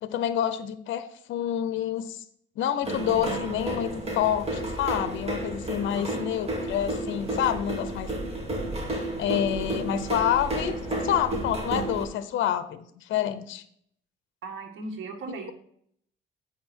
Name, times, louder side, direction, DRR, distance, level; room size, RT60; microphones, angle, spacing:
voice 1, 0.0-2.2 2.6-8.1 9.2-10.8 11.0-13.6, left 10 dB, 80° left, 12 dB, 0.7 m, -28 dB
sound 1, 2.8-12.0, right 1 dB, 30° right, 2.5 m, -32 dB
voice 2, 14.4-15.5, right 3 dB, 80° right, 3 dB, 1.9 m, -37 dB
8.6 x 5.9 x 4.4 m, 0.67 s
cardioid pair, 90°, 20 cm